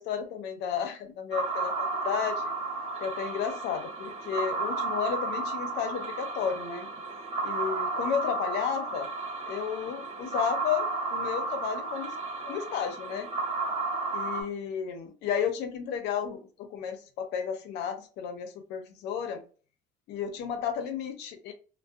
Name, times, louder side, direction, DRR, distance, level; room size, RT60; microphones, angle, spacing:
voice 1, 0.0-2.4 3.0-6.9 7.4-9.1 9.4-12.2 12.4-13.3 14.1-19.4 20.1-21.5, left 8 dB, 85° left, 6 dB, 0.6 m, -33 dB
sound 1, 1.3-14.4, right 3 dB, 35° right, 0.8 m, -33 dB
2.6 x 2.1 x 2.3 m, 0.38 s
cardioid pair, 110°, 17 cm